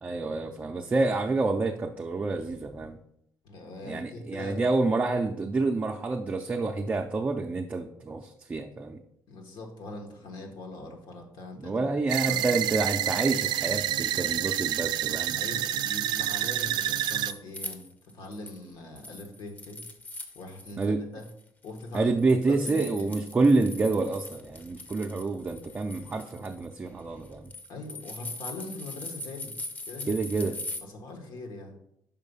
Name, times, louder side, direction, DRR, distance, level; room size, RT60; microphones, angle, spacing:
voice 1, 0.0-3.0 3.8-9.0 11.6-15.4 20.8-21.0 21.9-27.5 30.1-30.5, right 3 dB, 20° right, 2 dB, 0.4 m, -28 dB
voice 2, 3.4-4.6 9.3-11.9 12.2-12.6 15.3-17.8 18.1-19.8 20.3-20.8 21.1-21.3 21.6-22.1 22.5-23.1 27.7-29.5 29.8-30.2 30.8-31.8, left 2 dB, 80° left, 4 dB, 1.4 m, -41 dB
sound 1, 12.1-17.3, right 12 dB, 85° right, 0.3 m, -28 dB
sound 2, 16.6-18.6 19.0-20.9 21.2-30.8, left 2 dB, 25° left, 0.7 m, -41 dB
5.6 x 4.4 x 5.4 m, 0.74 s
cardioid pair, 145°, 7 cm